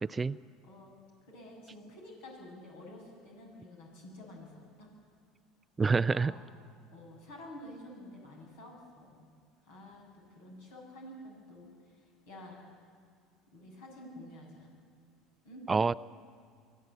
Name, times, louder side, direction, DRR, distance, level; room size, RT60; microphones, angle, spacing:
voice 1, 0.0-0.4 5.8-6.3 15.7-15.9, right 4 dB, 20° right, 18 dB, 0.4 m, -27 dB
voice 2, 1.2-4.9 5.9-6.4 6.9-9.2 9.6-10.0 10.3-12.6 13.5-14.7 15.4-15.6, left 1 dB, 70° left, -1 dB, 7.1 m, -50 dB
24.0 x 14.5 x 8.2 m, 2.2 s
hypercardioid pair, 70°, 0 cm